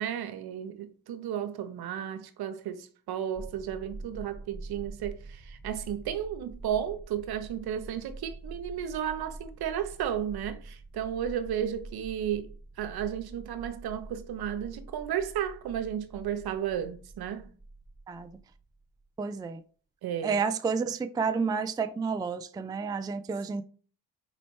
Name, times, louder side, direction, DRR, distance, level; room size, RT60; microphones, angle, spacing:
voice 1, 0.0-17.5 20.0-20.4, right 9 dB, 65° right, 0.8 m, -33 dB
sound 1, 3.3-19.1, right 2 dB, 15° left, 1.8 m, -46 dB
voice 2, 19.2-19.6 20.2-23.6, right 5 dB, 10° right, 0.3 m, -30 dB
4.3 x 4.1 x 3.0 m
supercardioid pair, 55°, 41 cm